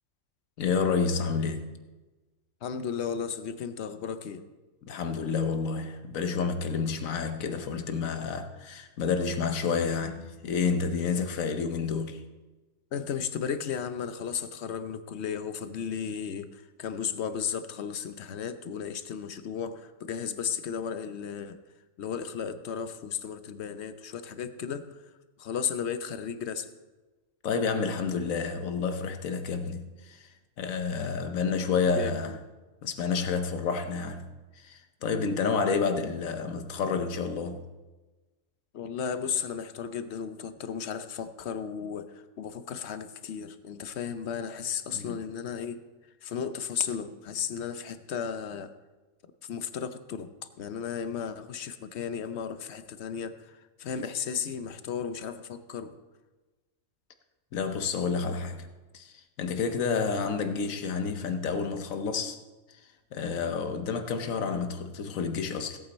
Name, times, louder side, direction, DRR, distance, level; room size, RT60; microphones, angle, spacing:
voice 1, 0.6-1.6 4.9-12.2 27.4-30.3 30.6-32.3 32.8-34.3 34.6-37.6 44.9-45.2 57.5-58.7 58.9-59.1 59.4-62.4 63.1-65.8, left 5 dB, 80° left, 1.3 m, -29 dB
voice 2, 2.6-4.4 12.9-21.6 22.0-25.0 25.4-26.7 31.8-32.4 38.7-45.8 46.2-48.7 49.4-56.0, left 7 dB, 60° left, 0.9 m, -34 dB
17.0 x 8.5 x 4.1 m
omnidirectional pair, 1.4 m